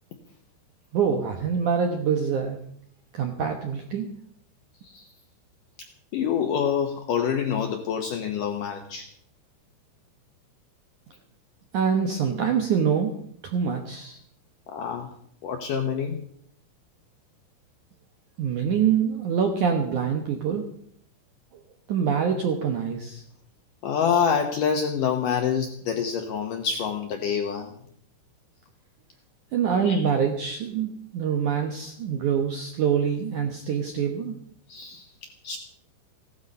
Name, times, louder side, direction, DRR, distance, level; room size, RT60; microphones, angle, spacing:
voice 1, 0.9-2.6 3.1-4.1 11.7-13.1 13.4-14.2 18.4-20.7 21.9-23.2 29.5-34.3, right 7 dB, 70° right, 4 dB, 1.9 m, -25 dB
voice 2, 6.1-9.1 14.7-15.1 15.4-16.2 23.8-27.7 29.8-30.0 34.7-35.0 35.4-35.6, left 7 dB, 70° left, 5 dB, 2.0 m, -26 dB
16.0 x 12.5 x 5.4 m, 0.66 s
omnidirectional pair, 5.2 m